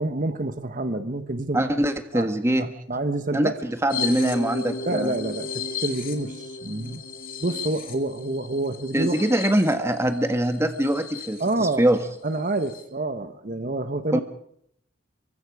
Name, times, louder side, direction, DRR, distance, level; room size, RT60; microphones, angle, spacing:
voice 1, 0.0-1.8 2.1-2.3 2.6-3.6 4.8-7.0 7.4-9.3 11.4-11.9 12.2-14.2, right 2 dB, 45° right, 10 dB, 1.2 m, -28 dB
voice 2, 1.5-2.7 3.3-5.1 8.9-12.0 14.1-14.2, right 1 dB, 15° right, 8 dB, 1.6 m, -23 dB
sound 1, 3.9-11.5 12.0-12.1 12.3-12.8, left 4 dB, 45° left, 3.0 m, -34 dB
25.5 x 24.0 x 4.9 m, 0.69 s
head